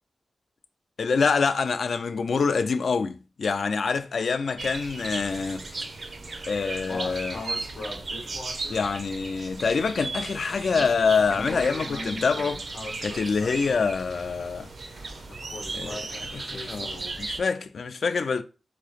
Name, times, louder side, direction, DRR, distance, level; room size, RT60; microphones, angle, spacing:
voice 1, 1.0-5.9 6.5-7.4 8.7-12.6 13.0-14.7 15.7-18.4, left 5 dB, 70° left, 0.3 m, -26 dB
sound 1, 4.6-17.4, right 3 dB, 60° right, 0.7 m, -36 dB
sound 2, 6.2-17.1, left 2 dB, 50° left, 0.8 m, -41 dB
3.8 x 2.9 x 4.8 m
wide cardioid pair, 165°, 0 cm